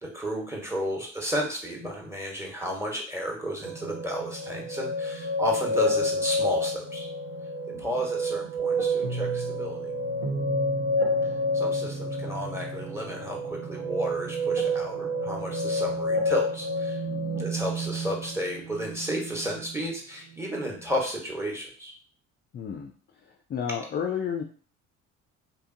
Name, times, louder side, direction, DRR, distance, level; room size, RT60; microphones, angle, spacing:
voice 1, 0.0-7.1 7.7-9.9 11.5-17.0 17.4-21.9, equal, 5° right, -1 dB, 1.1 m, -32 dB
sound 1, 3.6-19.9 20.3-21.0, equal, 80° right, 1.0 m, -29 dB
voice 2, 17.1-17.4 22.5-22.9 23.2-24.4, left 7 dB, 30° left, 4 dB, 0.4 m, -32 dB
2.8 x 2.5 x 2.6 m, 0.43 s
hypercardioid pair, 55°, 39 cm